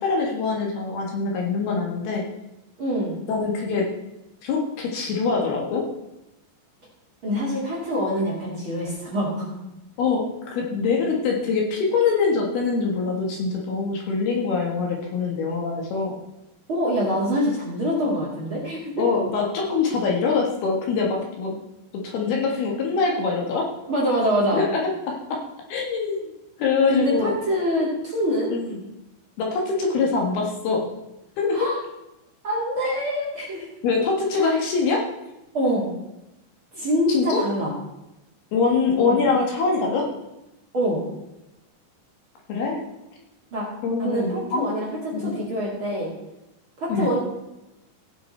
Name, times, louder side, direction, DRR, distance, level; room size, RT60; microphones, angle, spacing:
voice 1, 0.0-2.2 3.3-3.9 4.4-5.9 10.0-16.2 19.0-21.5 21.9-23.7 24.5-25.4 25.7-26.3 26.6-27.3 28.5-28.7 29.4-30.9 31.4-31.6 33.8-35.0 37.1-37.4 38.5-40.1 42.5-42.8 43.8-44.7 45.1-45.4 46.9-47.1, left 4 dB, 65° left, 0 dB, 3.2 m, -24 dB
voice 2, 2.8-3.2 7.2-9.5 16.7-19.1 23.9-24.6 26.9-28.5 31.5-31.8 32.4-33.7 35.5-35.9 36.7-37.7 39.0-39.2 40.7-41.0 43.5-43.6 44.0-46.1 46.8-47.2, equal, 35° right, -5 dB, 2.4 m, -25 dB
17.0 x 6.6 x 4.3 m, 0.93 s
omnidirectional pair, 5.2 m